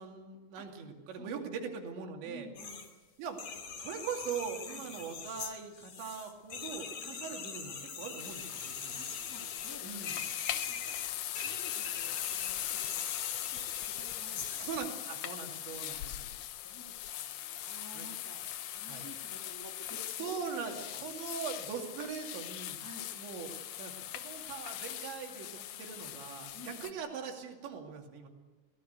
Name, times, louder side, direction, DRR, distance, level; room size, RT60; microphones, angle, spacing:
voice 1, 0.0-2.5 3.2-3.4 3.8-8.9 9.8-10.1 14.6-16.3 17.9-18.1 18.9-19.0 20.2-22.8 23.2-23.5 23.8-28.3, right 6 dB, 85° right, 2 dB, 4.9 m, -41 dB
voice 2, 1.1-1.8 2.2-2.9 4.7-4.9 7.0-7.2 8.5-8.6 8.9-11.0 11.4-14.7 15.6-16.0 16.6-20.3 20.6-20.9 22.8-23.1 26.5-27.0, equal, 10° left, 1 dB, 1.2 m, -53 dB
sound 1, 2.5-2.9 3.3-14.8, left 5 dB, 45° left, 3.1 m, -43 dB
sound 2, 8.2-26.9, left 12 dB, 75° left, 1.9 m, -40 dB
24.0 x 18.5 x 8.1 m, 1.3 s
omnidirectional pair, 5.0 m